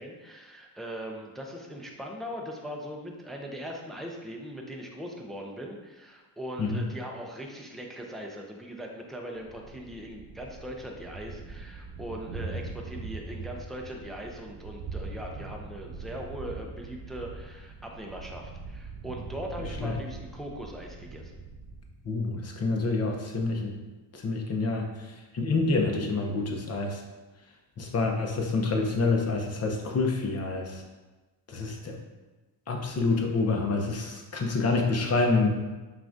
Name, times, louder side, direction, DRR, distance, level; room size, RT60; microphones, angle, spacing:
voice 1, 0.0-21.3, equal, ahead, 0 dB, 0.5 m, -40 dB
Thunder, 9.4-22.0, right 3 dB, 70° right, 0.7 m, -42 dB
voice 2, 22.0-23.7 24.1-27.0 27.8-30.8 31.5-32.0 32.7-35.5, left 3 dB, 35° left, 2 dB, 0.8 m, -27 dB
5.6 x 2.5 x 2.6 m, 1.2 s
cardioid pair, 80°, 45 cm